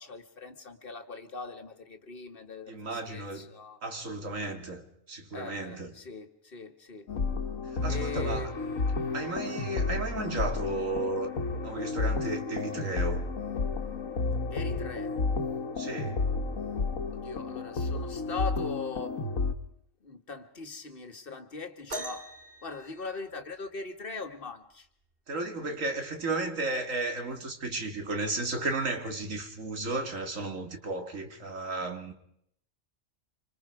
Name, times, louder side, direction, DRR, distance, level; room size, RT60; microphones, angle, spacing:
voice 1, 0.0-3.8 5.3-7.1 7.9-8.5 14.5-15.1 17.1-19.1 20.0-22.2 22.6-24.8, left 4 dB, 45° left, 1.7 m, -40 dB
voice 2, 2.7-3.5 3.8-5.9 7.8-8.5 9.1-11.3 11.6-13.2 15.8-16.2 25.3-32.1, right 2 dB, 75° right, 2.6 m, -34 dB
sound 1, 7.1-19.5, left 3 dB, 80° left, 1.6 m, -31 dB
sound 2, 21.9-23.8 25.5-25.6 26.3-26.6 27.5-27.6, right 1 dB, 45° right, 2.2 m, -41 dB
26.0 x 25.5 x 4.8 m
omnidirectional pair, 1.4 m